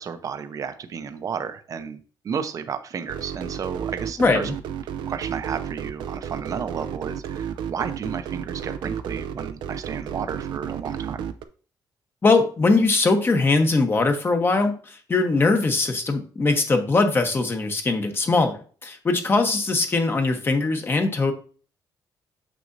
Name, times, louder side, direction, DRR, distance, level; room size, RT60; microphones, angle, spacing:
voice 1, 0.0-4.5 5.1-11.3, right 6 dB, 50° right, 10 dB, 0.7 m, -32 dB
sound 1, 3.1-11.4, right 8 dB, 90° right, 0.6 m, -32 dB
voice 2, 4.2-4.5 12.2-21.3, left 3 dB, 30° left, 6 dB, 1.0 m, -21 dB
7.0 x 6.2 x 2.7 m, 0.40 s
cardioid pair, 120°, 8 cm